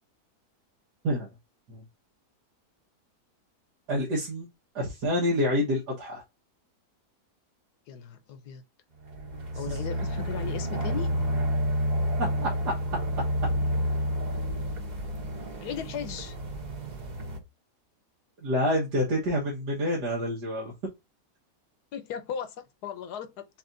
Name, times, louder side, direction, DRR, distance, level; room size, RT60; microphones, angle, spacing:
voice 1, 3.9-4.5 4.7-6.2 9.5-9.8 12.4-12.7 18.4-20.7, left 1 dB, 80° right, 2.0 m, -27 dB
voice 2, 7.9-8.6 9.5-11.1 15.6-16.4 21.9-23.5, left 8 dB, 75° left, 1.3 m, -37 dB
sound 1, 9.1-17.4, equal, 35° right, 0.8 m, -30 dB
7.0 x 3.0 x 2.6 m
omnidirectional pair, 1.8 m